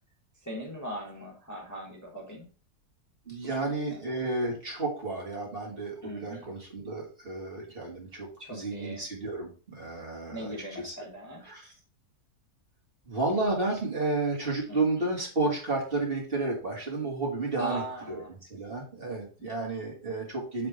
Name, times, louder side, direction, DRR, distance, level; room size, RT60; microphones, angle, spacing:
voice 1, 0.3-2.5 3.4-3.6 3.9-4.0 6.0-6.4 8.4-9.0 10.3-11.4 14.7-14.8 17.6-18.3 19.4-19.5, right 1 dB, 10° left, -2 dB, 1.4 m, -39 dB
voice 2, 3.3-10.5 10.8-11.0 11.4-11.7 13.1-17.8 18.1-20.7, right 3 dB, 35° right, -2 dB, 2.5 m, -32 dB
7.6 x 3.7 x 4.9 m, 0.37 s
omnidirectional pair, 1.7 m